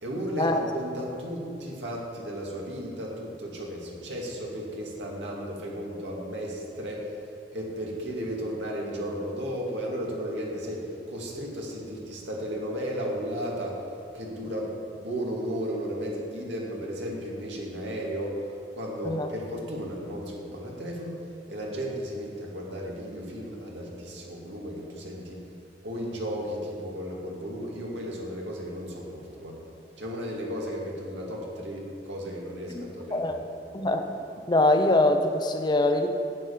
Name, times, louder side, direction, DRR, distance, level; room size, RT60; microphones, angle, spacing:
voice 1, 0.0-7.1 7.5-13.8 14.1-18.4 18.7-21.2 21.5-25.4 25.8-29.6 30.0-33.3, equal, 85° right, -2 dB, 2.3 m, -34 dB
voice 2, 33.7-34.1 34.5-36.1, left 2 dB, 25° left, 6 dB, 0.7 m, -23 dB
11.0 x 5.3 x 8.7 m, 2.7 s
head